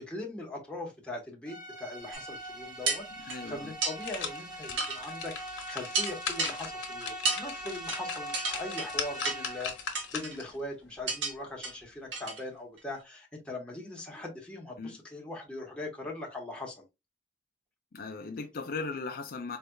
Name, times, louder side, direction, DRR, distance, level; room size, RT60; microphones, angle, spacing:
voice 1, 0.0-16.8, left 1 dB, 5° left, 1.2 m, -41 dB
sound 1, 1.5-9.9, right 1 dB, 20° right, 1.1 m, -42 dB
sound 2, 2.1-2.2 2.9-3.4 3.8-4.0 4.8-5.0 5.4-5.5 5.9-6.5 7.2-7.4 7.9-8.0 8.3-8.9 9.2-9.5 9.9-10.4 11.1-11.3 11.6-11.7 12.1-12.4 12.8-12.9, right 3 dB, 80° right, 1.2 m, -31 dB
sound 3, 3.1-3.2 3.7-10.5 11.0-11.1, left 6 dB, 85° left, 1.0 m, -39 dB
voice 2, 3.2-3.7 14.8-15.0 17.9-19.6, left 4 dB, 55° left, 0.5 m, -37 dB
4.2 x 3.3 x 2.3 m
head